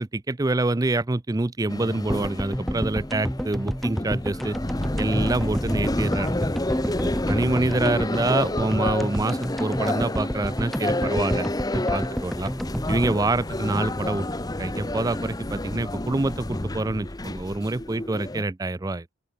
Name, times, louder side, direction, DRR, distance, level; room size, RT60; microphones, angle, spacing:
voice 1, 0.0-4.6 5.0-6.4 7.0-11.5 11.7-12.5 12.9-14.3 14.6-19.1, right 2 dB, 15° right, 0.4 m, -26 dB
sound 1, 1.7-18.4, left 1 dB, 20° left, 0.9 m, -30 dB
sound 2, 2.1-14.3 14.6-14.7 14.8-14.9, equal, ahead, 1.9 m, -30 dB
open air
head